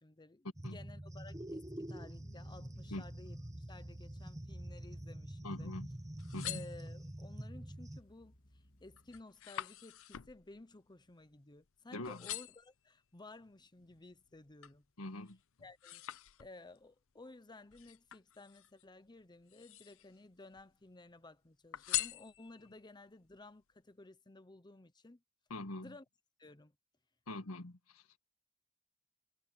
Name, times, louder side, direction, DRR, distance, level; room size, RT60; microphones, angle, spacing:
voice 1, 0.0-5.7 6.4-14.8 15.6-16.0 16.4-25.2 25.8-26.0 26.4-26.7, left 2 dB, 20° left, 0.9 m, -55 dB
sound 1, 0.6-8.0, right 1 dB, 15° right, 1.2 m, -46 dB
sound 2, 2.2-9.2, equal, 40° left, 2.3 m, -63 dB
voice 2, 5.4-5.9 6.3-6.6 11.9-12.2 15.0-15.4 25.5-26.0 27.3-28.0, left 2 dB, 85° left, 1.7 m, -43 dB
sound 3, 6.0-7.3 7.9-8.3 8.6-11.7 12.0-12.7 13.4-14.8 15.3-16.8 17.7-18.8 19.4-20.2 20.5-21.2 21.7-22.8 23.3-23.4, left 14 dB, 65° left, 0.7 m, -44 dB
head